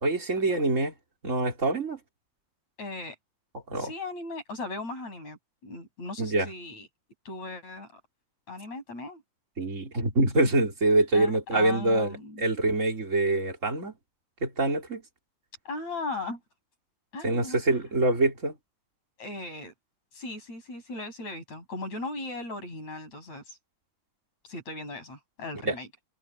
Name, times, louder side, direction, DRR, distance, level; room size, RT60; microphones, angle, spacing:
voice 1, 0.0-0.9 1.2-2.0 3.7-3.9 6.2-6.5 9.6-12.1 12.4-13.9 14.4-15.0 17.2-18.5 25.6-25.7, right 2 dB, 20° right, 3.9 m, -25 dB
voice 2, 2.8-3.2 3.7-6.9 7.3-8.0 8.5-9.2 11.1-12.4 15.7-16.4 17.1-17.8 19.2-19.7 20.1-23.6 24.4-25.9, left 2 dB, 40° left, 9.2 m, -38 dB
omnidirectional pair, 4.9 m